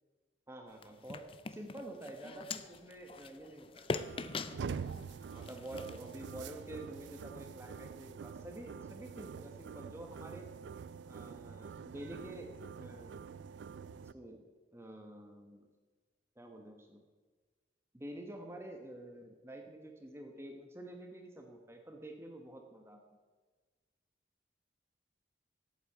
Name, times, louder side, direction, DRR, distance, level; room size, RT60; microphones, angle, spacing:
voice 1, 0.5-4.3 5.3-10.5 11.1-12.5 12.8-13.2 14.0-14.4 14.7-15.7 16.4-17.0 17.9-23.0, right 1 dB, 15° right, 3 dB, 1.0 m, -48 dB
sound 1, 0.7-6.8, left 4 dB, 30° left, 0.4 m, -43 dB
sound 2, 3.9-14.1, right 6 dB, 75° right, 0.4 m, -46 dB
8.3 x 8.2 x 7.8 m, 1.3 s
head